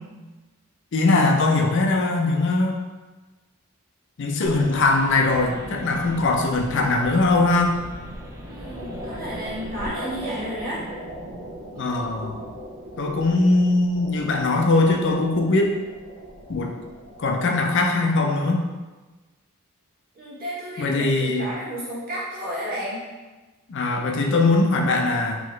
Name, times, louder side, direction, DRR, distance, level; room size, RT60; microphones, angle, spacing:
voice 1, 0.9-2.8 4.2-7.8 11.8-12.5 13.0-15.8 16.5-16.7 17.2-18.6 20.8-21.5 23.7-25.4, left 2 dB, 55° left, 2 dB, 0.5 m, -21 dB
sound 1, 4.4-9.9, equal, 15° right, 0.4 m, -41 dB
sound 2, 5.2-17.3, equal, 90° right, 1.2 m, -39 dB
voice 2, 8.5-10.8 20.1-23.0, equal, 45° right, -8 dB, 1.3 m, -32 dB
3.8 x 3.0 x 3.2 m, 1.2 s
head